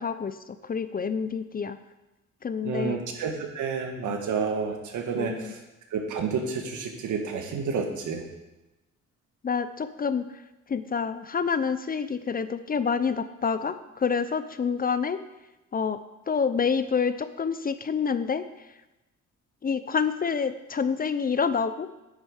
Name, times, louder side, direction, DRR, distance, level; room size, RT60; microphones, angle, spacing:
voice 1, 0.0-1.8 2.4-3.0 4.1-4.2 5.2-5.5 9.4-10.2 10.7-15.2 15.7-16.0 16.3-18.4 19.6-21.9, left 6 dB, 30° left, 12 dB, 0.5 m, -27 dB
voice 2, 2.6-5.6 5.9-8.2, right 5 dB, 75° right, 3 dB, 1.7 m, -30 dB
9.7 x 6.7 x 4.9 m, 1.0 s
cardioid pair, 90°, 30 cm